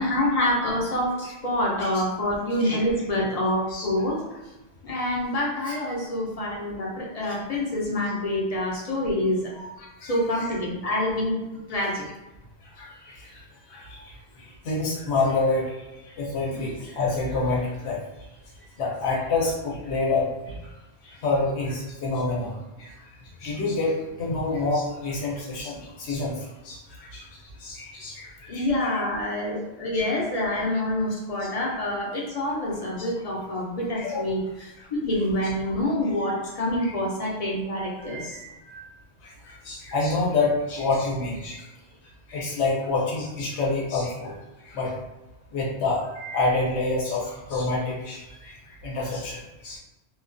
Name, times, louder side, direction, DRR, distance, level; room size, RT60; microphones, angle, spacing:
voice 1, 0.0-4.4 4.8-9.5 10.0-11.4 11.7-12.0 28.5-34.4 35.0-38.4, left 1 dB, 45° left, -4 dB, 0.6 m, -26 dB
voice 2, 9.6-10.2 11.7-11.8 12.8-13.4 13.7-15.8 16.2-18.0 18.8-20.6 21.0-22.5 22.8-22.9 23.4-27.3 27.6-29.1 31.4-31.6 33.0-33.1 33.9-34.2 34.8-34.9 36.8-36.9 38.1-38.8 39.2-41.7 42.3-44.3 44.6-45.0 45.5-49.8, left 3 dB, 90° left, -4 dB, 0.9 m, -28 dB
2.3 x 2.2 x 2.5 m, 1.0 s
omnidirectional pair, 1.1 m